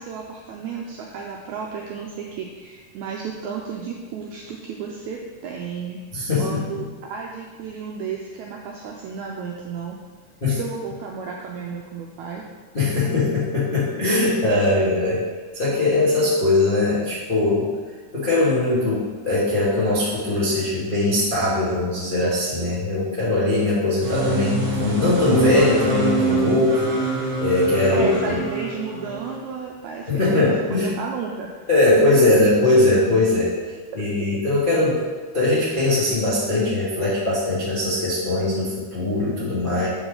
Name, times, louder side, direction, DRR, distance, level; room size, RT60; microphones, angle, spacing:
voice 1, 0.0-6.0 6.4-10.0 10.5-12.4 27.9-31.7, right 6 dB, 90° right, 0 dB, 1.6 m, -33 dB
voice 2, 6.1-6.9 10.4-10.6 12.7-15.2 15.5-17.7 18.1-26.7 27.4-28.4 30.1-30.9 31.7-33.5 34.0-35.0 35.3-39.9, left 2 dB, 80° left, -10 dB, 0.4 m, -20 dB
sound 1, 24.0-29.4, right 3 dB, 50° right, 1.6 m, -25 dB
7.3 x 5.0 x 3.8 m, 1.4 s
omnidirectional pair, 3.9 m